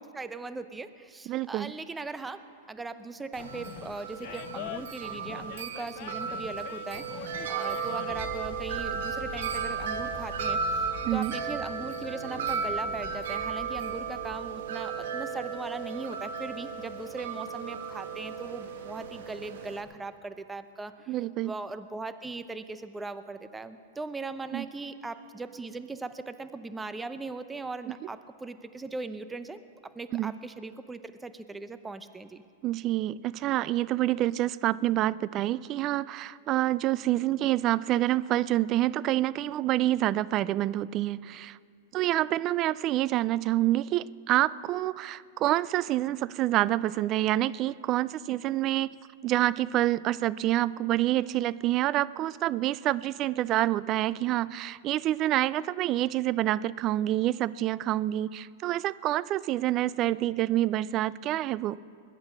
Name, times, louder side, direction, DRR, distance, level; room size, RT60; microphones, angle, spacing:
voice 1, 0.0-32.4, right 3 dB, 10° right, 11 dB, 0.7 m, -39 dB
voice 2, 1.3-1.7 11.0-11.3 21.1-21.5 24.5-24.7 27.9-28.0 30.1-30.3 32.6-41.6 41.9-48.9 49.2-61.8, right 14 dB, 40° right, 19 dB, 0.4 m, -27 dB
Animal, 3.3-8.4, left 14 dB, 50° left, 0.6 m, -44 dB
Wind chime, 3.3-19.8, right 5 dB, 70° right, 1.6 m, -35 dB
sound 1, 8.1-14.9, left 3 dB, 30° left, 2.6 m, -45 dB
21.0 x 10.5 x 6.1 m, 2.3 s
hypercardioid pair, 120°, 0 cm